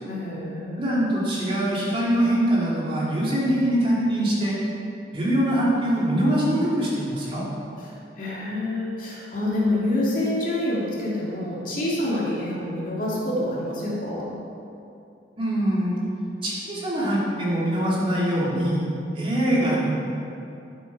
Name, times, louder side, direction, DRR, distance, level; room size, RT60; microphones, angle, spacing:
voice 1, 0.1-0.9 7.8-14.3, left 1 dB, 50° left, -5 dB, 2.3 m, -27 dB
voice 2, 0.8-4.6 5.1-7.4 15.4-15.9 16.4-18.8 19.1-19.9, right 1 dB, 30° right, -6 dB, 2.4 m, -23 dB
11.0 x 8.1 x 4.7 m, 2.7 s
head